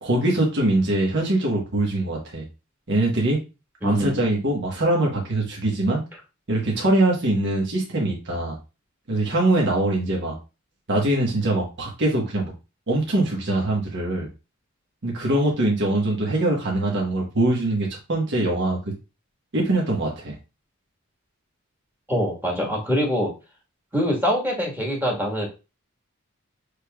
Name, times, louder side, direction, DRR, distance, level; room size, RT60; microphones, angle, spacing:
voice 1, 0.0-2.4 2.9-3.4 3.8-6.0 6.5-8.6 9.1-10.3 10.9-12.5 12.9-14.3 15.0-18.8 19.5-20.3, right 2 dB, 60° right, -2 dB, 1.3 m, -23 dB
voice 2, 3.8-4.2 22.1-23.3 23.9-25.5, equal, 10° right, -1 dB, 1.4 m, -24 dB
6.6 x 3.3 x 2.3 m, 0.29 s
head